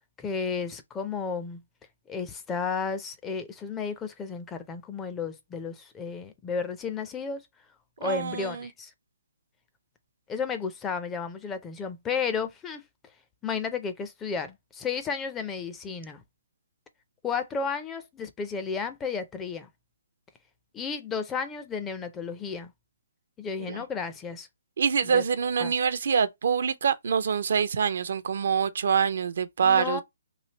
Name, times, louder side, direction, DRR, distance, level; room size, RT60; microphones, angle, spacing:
voice 1, 0.2-1.6 2.1-7.5 8.0-8.9 10.3-12.8 13.4-16.2 17.2-19.7 20.7-22.7 23.4-24.5 25.0-25.2 25.6-25.7 29.6-30.0, left 5 dB, 15° left, 0.4 m, -33 dB
voice 2, 8.0-8.7 23.7-23.8 24.8-30.0, right 6 dB, 60° right, 0.4 m, -25 dB
3.2 x 2.5 x 2.8 m
hypercardioid pair, 155°, 0 cm